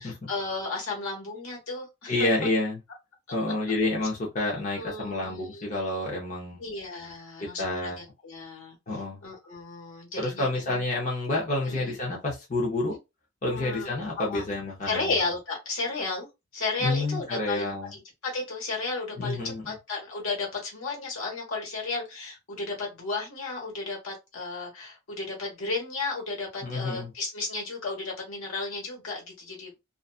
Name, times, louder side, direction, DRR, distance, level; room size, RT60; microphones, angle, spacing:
voice 1, 0.0-2.3 4.7-5.7 6.6-8.7 9.2-10.8 11.6-12.0 13.5-13.9 14.3-14.4 14.9-16.3 16.5-29.7, left 3 dB, 80° left, 1.3 m, -33 dB
voice 2, 2.1-2.8 3.3-6.6 7.4-8.0 8.9-9.2 10.2-13.0 13.4-15.2 16.8-17.9 19.2-19.8 26.6-27.1, left 2 dB, 40° left, 0.7 m, -29 dB
2.5 x 2.3 x 2.4 m
head